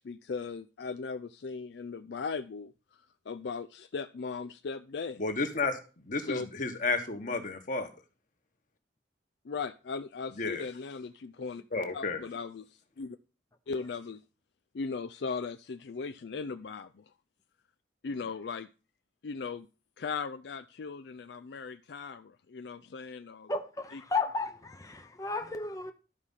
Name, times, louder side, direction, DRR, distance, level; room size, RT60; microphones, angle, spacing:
voice 1, 0.0-2.7 3.3-5.2 6.3-6.5 9.5-11.6 11.9-13.2 13.7-14.2 14.7-17.0 18.0-18.7 19.2-19.7 20.0-23.5 23.9-24.0, left 5 dB, 65° left, 0.4 m, -38 dB
voice 2, 5.2-5.8 6.0-7.9 10.4-10.6 11.7-12.2, left 3 dB, 45° left, 1.6 m, -31 dB
voice 3, 23.5-25.9, left 3 dB, 20° left, 0.7 m, -33 dB
12.5 x 4.9 x 5.6 m
head